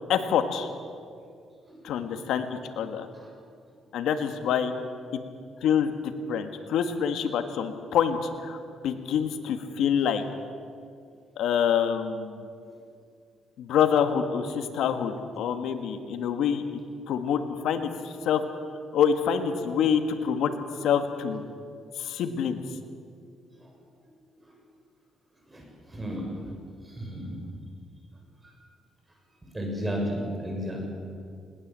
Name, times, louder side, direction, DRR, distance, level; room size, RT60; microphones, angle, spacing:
voice 1, 0.1-0.7 1.8-3.1 3.9-4.7 5.6-5.9 6.3-8.6 8.8-10.2 11.4-12.5 13.6-16.6 17.1-18.4 18.9-20.5 20.8-21.5 22.0-22.6, left 8 dB, 80° left, 7 dB, 1.8 m, -26 dB
voice 2, 1.7-2.1 3.1-3.3 23.6-23.7 25.5-26.3 26.9-27.4 29.5-30.8, equal, 20° right, 1 dB, 7.0 m, -34 dB
20.5 x 19.5 x 7.7 m, 2.2 s
cardioid pair, 90°, 0 cm